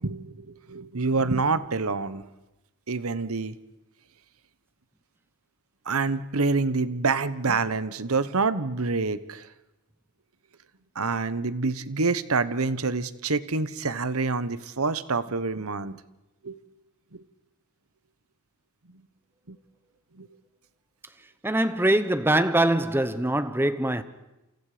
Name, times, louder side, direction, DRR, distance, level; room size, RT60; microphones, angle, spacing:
voice 1, 0.0-2.2 2.9-3.5 5.9-9.5 11.0-16.0 16.4-16.6 19.5-19.6 20.2-20.3, right 4 dB, 75° right, 1.1 m, -27 dB
voice 2, 21.4-24.0, right 1 dB, 10° right, 1.0 m, -23 dB
28.5 x 27.5 x 5.1 m
head